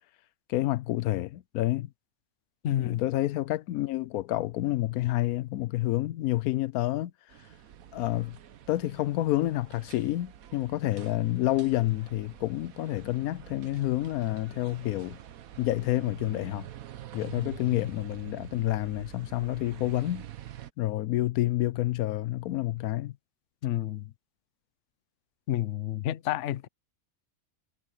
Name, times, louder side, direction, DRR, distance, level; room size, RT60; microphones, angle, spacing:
voice 1, 0.5-1.9 2.8-7.1 7.9-8.4 8.7-15.2 15.6-16.7 17.1-20.3 20.8-23.2, left 16 dB, 85° left, 1.1 m, -29 dB
voice 2, 2.6-3.0 17.4-17.5 23.6-24.1 25.5-26.7, left 12 dB, 60° left, 0.9 m, -30 dB
sound 1, 7.3-20.7, right 12 dB, 75° right, 1.3 m, -47 dB
omnidirectional pair, 1.5 m